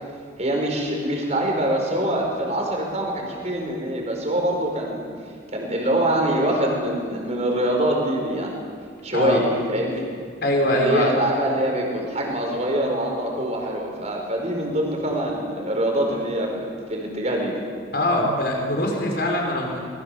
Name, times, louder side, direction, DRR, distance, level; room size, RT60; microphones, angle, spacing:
voice 1, 0.4-5.0 5.5-8.6 9.0-10.0 10.7-16.5 16.9-17.5, right 1 dB, 35° right, 0 dB, 5.2 m, -24 dB
voice 2, 9.1-9.4 10.4-11.1 17.9-19.9, left 1 dB, 50° left, 0 dB, 5.7 m, -22 dB
26.0 x 21.5 x 7.2 m, 2.1 s
head